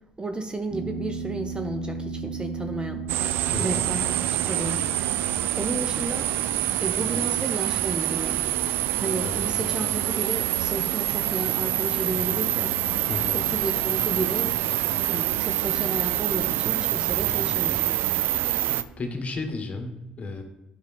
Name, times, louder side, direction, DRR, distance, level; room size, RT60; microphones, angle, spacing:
voice 1, 0.2-3.3 3.6-5.2 5.6-6.3 6.8-8.4 9.0-13.0 13.3-14.5 15.1-18.0, right 2 dB, 25° right, 6 dB, 0.8 m, -33 dB
sound 1, 0.7-19.1, right 5 dB, 45° right, 1.5 m, -38 dB
sound 2, 3.1-18.8, right 13 dB, 70° right, 0.3 m, -26 dB
voice 2, 3.5-3.8 9.2-9.4 13.1-13.4 19.0-20.4, left 3 dB, 35° left, 4 dB, 1.6 m, -33 dB
8.8 x 5.6 x 3.5 m, 0.97 s
hypercardioid pair, 50°, 4 cm